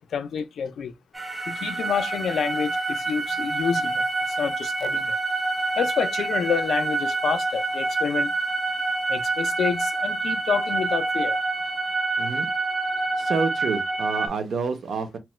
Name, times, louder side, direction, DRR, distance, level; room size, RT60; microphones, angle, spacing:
voice 1, 0.1-0.9 1.5-5.2 5.8-8.3 9.1-11.4, left 7 dB, 75° left, 0.3 m, -28 dB
sound 1, 1.1-14.3, right 3 dB, 10° right, 0.3 m, -27 dB
voice 2, 13.2-15.2, right 4 dB, 65° right, 0.6 m, -28 dB
2.9 x 2.1 x 3.0 m
wide cardioid pair, 150°, 0 cm